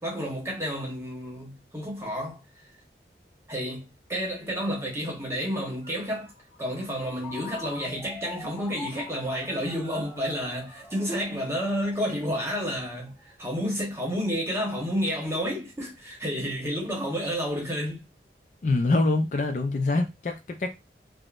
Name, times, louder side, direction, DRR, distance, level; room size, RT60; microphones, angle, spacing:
voice 1, 0.0-2.7 3.5-6.3 6.6-18.0, equal, 15° right, 0.9 m, -30 dB
Ringtone, 5.8-13.3, left 3 dB, 20° left, 1.4 m, -45 dB
voice 2, 18.6-20.7, left 2 dB, 45° left, 0.3 m, -25 dB
3.5 x 2.0 x 2.4 m
head